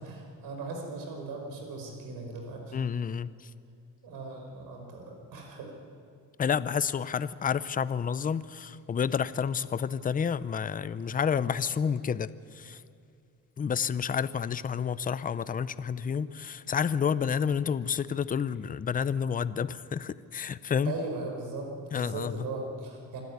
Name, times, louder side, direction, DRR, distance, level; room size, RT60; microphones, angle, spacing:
voice 1, 0.0-2.8 4.0-5.7 20.8-23.2, right 3 dB, 85° right, 2 dB, 5.0 m, -38 dB
voice 2, 2.7-3.5 6.4-12.8 13.6-20.9 21.9-22.5, left 7 dB, 25° left, 16 dB, 0.6 m, -30 dB
26.0 x 12.5 x 9.6 m, 2.3 s
cardioid pair, 115°, 33 cm